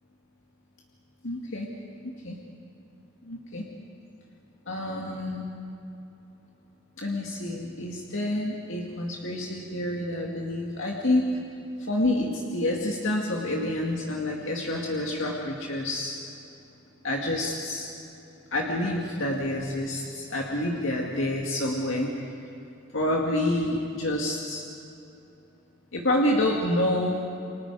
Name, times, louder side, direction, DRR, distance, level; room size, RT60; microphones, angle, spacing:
voice 1, 1.2-1.7 2.2-2.4 3.2-3.6 4.7-5.5 7.0-11.3 11.8-16.2 17.0-17.9 18.5-22.1 22.9-24.7 25.9-27.2, left 1 dB, 70° left, -2 dB, 2.3 m, -28 dB
29.5 x 25.0 x 4.9 m, 2.9 s
head